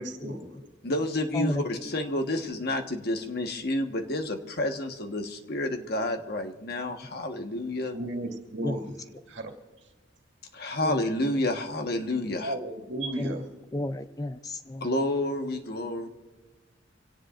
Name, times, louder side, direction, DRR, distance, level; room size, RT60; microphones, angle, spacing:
voice 1, 0.0-0.7 7.9-9.6 12.4-13.5, right 1 dB, 70° right, 2 dB, 2.2 m, -35 dB
voice 2, 0.8-8.0 10.5-12.5 14.8-16.1, left 1 dB, 55° left, 5 dB, 1.4 m, -29 dB
voice 3, 13.7-14.9, left 1 dB, 20° left, 9 dB, 0.5 m, -32 dB
26.0 x 17.5 x 2.5 m, 1.3 s
head